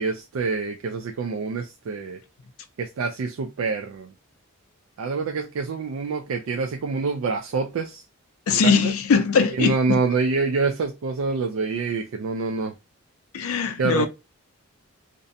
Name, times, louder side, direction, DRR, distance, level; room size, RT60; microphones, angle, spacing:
voice 1, 0.0-2.2 2.8-4.1 5.0-8.0 8.6-8.9 9.5-12.7 13.8-14.1, right 4 dB, 65° right, 0.3 m, -26 dB
voice 2, 8.5-10.0 13.3-14.1, left 5 dB, 75° left, 0.4 m, -21 dB
2.5 x 2.1 x 2.6 m
head